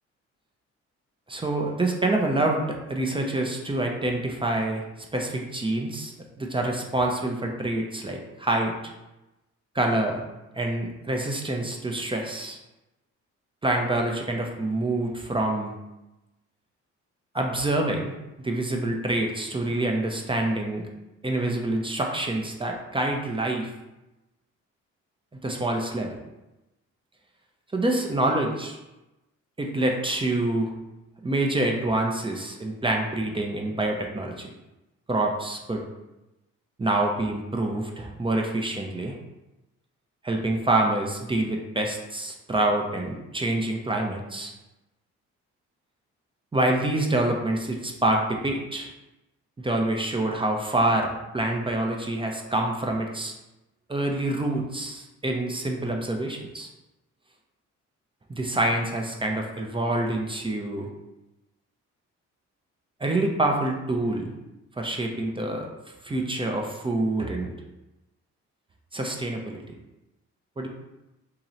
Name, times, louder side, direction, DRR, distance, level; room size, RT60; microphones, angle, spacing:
voice 1, 1.3-4.8 5.1-8.7 9.7-10.2 10.5-12.6 13.6-15.7 17.3-18.1 18.4-20.8 21.2-23.7 25.4-26.2 27.7-28.8 29.6-30.7 31.2-34.5 35.1-35.8 36.8-39.1 40.2-44.5 46.5-48.9 49.6-53.3 53.9-56.7 58.3-60.9 63.0-64.3 64.8-65.7 66.0-67.5 68.9-69.6 70.6-70.7, right 2 dB, 15° right, 1 dB, 0.6 m, -26 dB
3.0 x 2.9 x 3.9 m, 0.99 s
cardioid pair, 90°, 30 cm